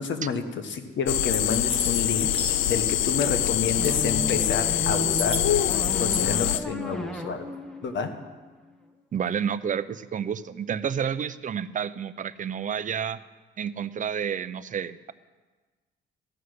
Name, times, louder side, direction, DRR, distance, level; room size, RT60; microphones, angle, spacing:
voice 1, 0.0-2.3 2.7-5.4 6.0-7.5 7.8-8.1, left 5 dB, 65° left, 7 dB, 1.3 m, -29 dB
sound 1, 1.1-6.6, left 12 dB, 85° left, 0.5 m, -25 dB
sound 2, 1.3-3.0 3.3-4.2 4.7-6.2, equal, 30° left, 2.8 m, -36 dB
sound 3, 3.8-8.9, right 1 dB, 5° left, 1.2 m, -35 dB
voice 2, 9.1-13.2 13.6-15.1, right 7 dB, 40° right, 14 dB, 0.5 m, -30 dB
14.0 x 6.4 x 9.6 m, 1.3 s
cardioid pair, 90°, 20 cm